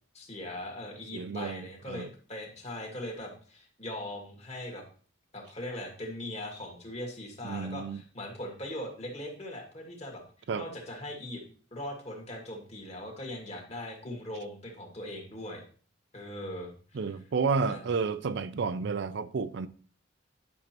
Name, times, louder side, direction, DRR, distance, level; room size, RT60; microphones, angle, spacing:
voice 1, 0.1-4.8 5.3-10.2 10.6-11.4 11.7-15.6 16.1-17.0 17.7-17.9, left 1 dB, 35° left, 2.1 m, -40 dB
voice 2, 1.1-2.1 7.4-8.0 10.5-10.7 16.9-19.7, right 5 dB, 60° right, 0.4 m, -31 dB
10.5 x 6.3 x 2.9 m
head